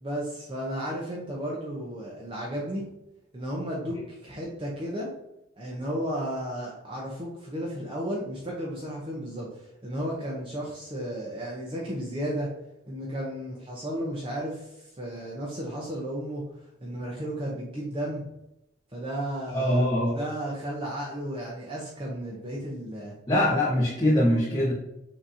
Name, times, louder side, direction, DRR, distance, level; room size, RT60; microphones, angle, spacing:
voice 1, 0.0-2.9 3.3-5.1 5.6-12.5 12.9-16.4 16.8-18.3 18.9-19.9 20.1-23.2, equal, 25° right, -4 dB, 0.7 m, -33 dB
voice 2, 19.5-20.2 23.3-24.7, left 1 dB, 20° left, -8 dB, 1.0 m, -23 dB
6.1 x 2.9 x 2.7 m, 0.86 s
head